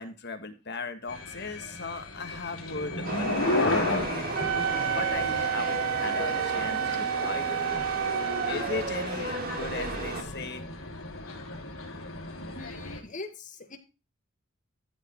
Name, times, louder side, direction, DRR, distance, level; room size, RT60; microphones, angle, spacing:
voice 1, 0.0-4.3 4.9-7.6 8.4-10.6, left 3 dB, 50° left, 8 dB, 1.6 m, -37 dB
sound 1, 1.1-13.0, left 2 dB, 80° left, 3.6 m, -35 dB
Chatter / Subway metro underground, 3.0-10.2, right 2 dB, 45° right, 2.8 m, -33 dB
Wind instrument woodwind instrument, 4.3-8.6, right 9 dB, 75° right, 0.4 m, -30 dB
voice 2, 12.6-13.8, left 3 dB, 35° left, 6 dB, 1.7 m, -42 dB
13.5 x 5.3 x 4.3 m, 0.31 s
head